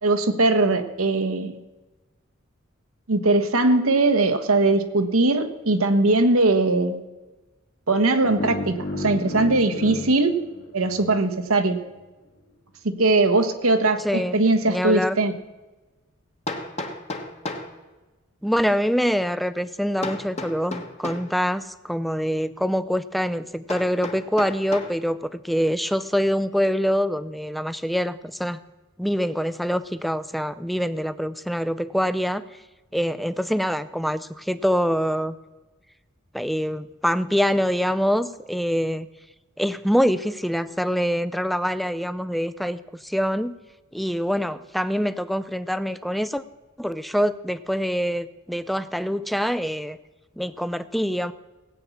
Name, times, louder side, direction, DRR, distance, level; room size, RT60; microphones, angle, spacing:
voice 1, 0.0-1.6 3.1-7.0 7.9-10.3 10.7-11.8 13.0-15.3, right 2 dB, 90° right, 8 dB, 1.3 m, -20 dB
sound 1, 8.2-11.3, left 1 dB, 50° left, 2.0 m, -33 dB
voice 2, 14.0-14.4 14.7-15.2 18.4-28.6 29.0-32.6 32.9-35.4 36.3-39.1 39.6-43.5 43.9-46.4 46.8-50.0 50.4-51.3, equal, ahead, 14 dB, 0.4 m, -25 dB
Hammer, 16.5-17.8 20.0-21.3 23.7-25.0, left 2 dB, 30° left, 1.3 m, -33 dB
17.5 x 8.6 x 7.2 m, 1.2 s
head